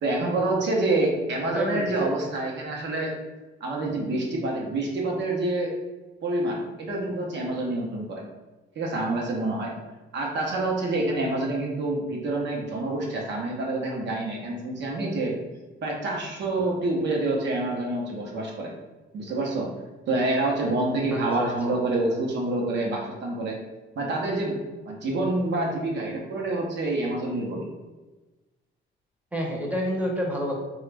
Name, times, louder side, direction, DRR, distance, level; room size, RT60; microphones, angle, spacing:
voice 1, 0.0-3.1 3.6-5.7 6.2-8.2 8.8-9.7 10.1-15.3 15.8-18.7 19.1-19.7 20.1-23.6 24.0-24.6 24.8-27.7, right 2 dB, 65° right, -1 dB, 0.8 m, -27 dB
voice 2, 1.5-2.1 21.1-21.7 29.3-30.5, equal, 5° right, -1 dB, 0.8 m, -29 dB
2.9 x 2.3 x 3.3 m, 1.2 s
cardioid pair, 90°, 20 cm